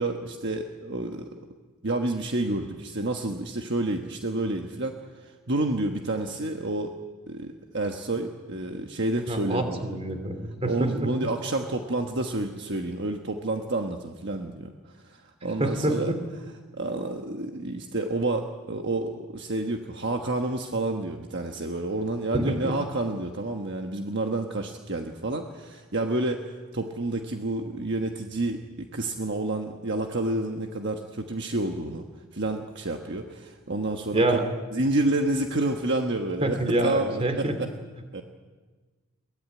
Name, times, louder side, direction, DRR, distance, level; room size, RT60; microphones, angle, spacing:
voice 1, 0.0-1.4 1.8-6.9 7.3-10.0 10.6-14.7 15.0-16.1 16.8-32.1 32.3-34.4 34.7-37.7 38.1-38.2, right 2 dB, 50° right, 3 dB, 1.3 m, -29 dB
voice 2, 9.3-11.1 15.6-16.2 22.3-22.7 34.1-34.4 36.4-37.6, right 1 dB, 25° right, 6 dB, 2.9 m, -26 dB
22.5 x 17.5 x 9.4 m, 1.3 s
head